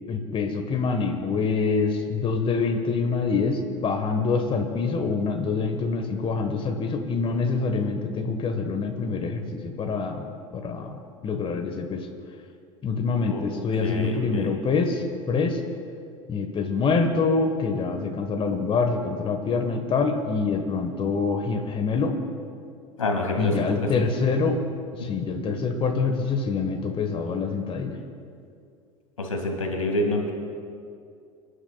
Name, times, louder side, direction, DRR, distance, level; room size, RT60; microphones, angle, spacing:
voice 1, 0.1-12.1 12.8-15.6 16.3-22.1 23.4-24.6 24.9-28.0, left 4 dB, 30° left, 5 dB, 1.4 m, -25 dB
voice 2, 13.3-14.6 23.0-23.6 24.0-24.1 29.2-30.3, left 2 dB, 85° left, 2 dB, 2.2 m, -28 dB
27.0 x 11.5 x 2.4 m, 2.4 s
figure-of-eight pair, 75°, 17 cm